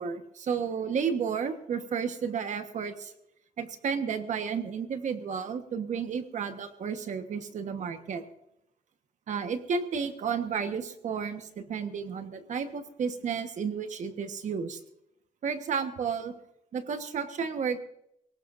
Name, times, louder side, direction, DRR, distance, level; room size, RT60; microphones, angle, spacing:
voice 1, 0.0-3.1 3.6-8.2 9.3-14.8 15.4-16.3 16.7-17.8, right 6 dB, 55° right, 7 dB, 1.4 m, -32 dB
22.0 x 18.0 x 2.6 m, 0.77 s
wide cardioid pair, 160°, 15 cm